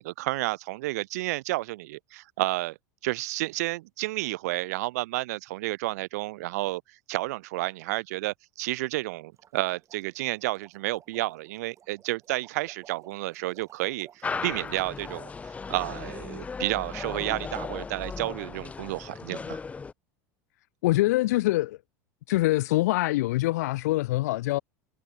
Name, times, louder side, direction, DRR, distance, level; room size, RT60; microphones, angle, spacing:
voice 1, 0.0-2.8 3.0-19.6, right 19 dB, 80° right, 0.4 m, -31 dB
sound 1, 9.4-15.2, right 9 dB, 35° right, 6.9 m, -56 dB
sound 2, 14.2-19.9, left 4 dB, 15° left, 0.5 m, -36 dB
voice 2, 20.8-21.8 22.3-24.6, left 18 dB, 80° left, 0.4 m, -24 dB
supercardioid pair, 105°, 9 cm